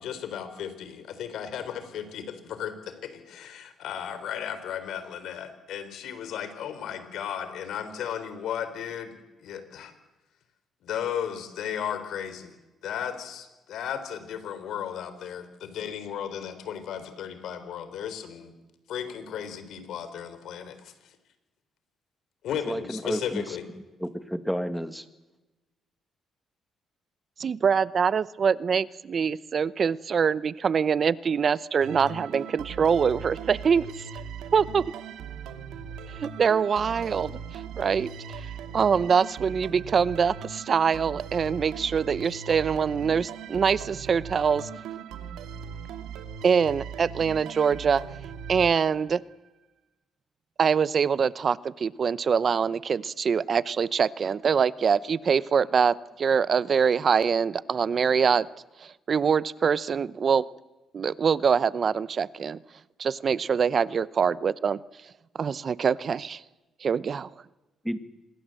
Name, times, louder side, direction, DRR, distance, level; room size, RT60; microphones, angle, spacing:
voice 1, 0.0-9.9 10.8-12.5 12.8-18.5 18.9-21.1 22.4-23.7, left 9 dB, 80° left, 11 dB, 3.8 m, -35 dB
voice 2, 22.7-23.4 24.0-25.1 67.8-68.0, equal, ahead, 10 dB, 1.9 m, -31 dB
voice 3, 27.4-33.9 34.5-34.9 36.1-44.7 46.4-48.0 48.5-49.2 50.6-58.5 58.8-60.5 60.9-62.6 63.0-64.8 65.3-66.4 66.8-67.3, right 6 dB, 45° right, 19 dB, 0.8 m, -24 dB
sound 1, 31.8-49.3, right 7 dB, 90° right, 2.5 m, -39 dB
26.5 x 21.5 x 7.8 m, 1.1 s
cardioid pair, 90°, 0 cm